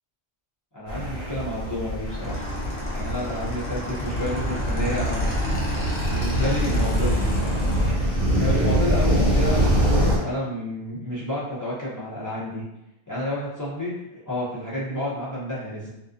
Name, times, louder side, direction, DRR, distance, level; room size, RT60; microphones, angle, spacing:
voice 1, 0.7-2.4 2.9-5.4 6.0-7.2 7.5-12.6 13.1-14.0 14.2-15.9, left 1 dB, 25° left, -8 dB, 0.5 m, -30 dB
sound 1, 0.9-10.2, equal, 60° right, 0.9 m, -24 dB
Motorcycle / Engine, 2.1-7.9, left 1 dB, 60° left, 0.8 m, -33 dB
2.4 x 2.2 x 2.4 m, 0.87 s
omnidirectional pair, 1.2 m